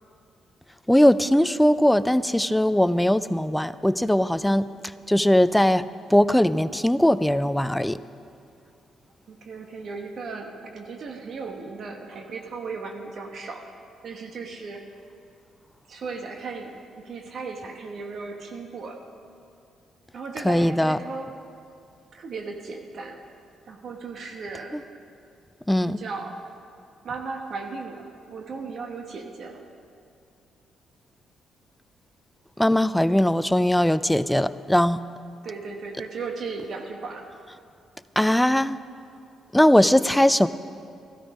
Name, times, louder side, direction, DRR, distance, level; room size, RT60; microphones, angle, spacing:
voice 1, 0.9-4.7 5.1-5.8 6.1-8.0 20.4-21.0 25.7-26.0 32.6-35.0 38.2-38.8 39.5-40.5, left 1 dB, 5° left, 14 dB, 0.4 m, -20 dB
voice 2, 9.3-13.7 14.0-14.8 15.9-19.0 20.1-21.3 22.1-23.2 23.7-24.8 25.8-26.4 27.0-29.6 35.4-37.3, right 4 dB, 60° right, 3 dB, 1.1 m, -36 dB
14.0 x 13.0 x 5.3 m, 2.5 s
cardioid pair, 90°, 0 cm